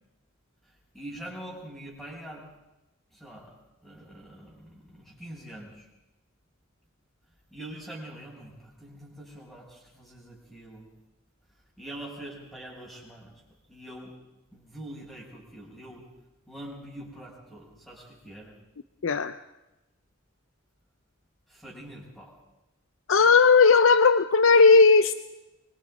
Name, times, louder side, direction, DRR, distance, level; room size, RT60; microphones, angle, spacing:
voice 1, 0.6-2.4 3.1-3.5 3.8-5.9 7.5-10.9 11.8-13.4 13.7-14.1 14.5-16.0 16.5-18.5 21.5-22.3, right 1 dB, 5° left, -8 dB, 5.9 m, -44 dB
voice 2, 19.0-19.3 23.1-25.1, left 4 dB, 70° left, 12 dB, 0.6 m, -17 dB
24.5 x 24.0 x 4.9 m, 1.0 s
head